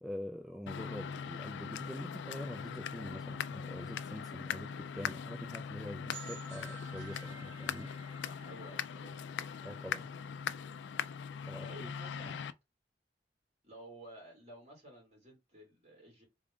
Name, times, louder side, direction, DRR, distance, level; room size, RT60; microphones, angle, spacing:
voice 1, 0.0-7.9 9.6-10.1 11.5-11.9 12.2-12.3, equal, ahead, 0.3 m, -45 dB
sound 1, 0.7-12.5, left 7 dB, 80° left, 0.3 m, -41 dB
sound 2, 6.1-9.8, right 6 dB, 85° right, 0.6 m, -53 dB
voice 2, 8.2-9.3 11.6-12.4 13.6-16.2, right 1 dB, 35° right, 2.2 m, -52 dB
3.6 x 2.4 x 3.5 m
head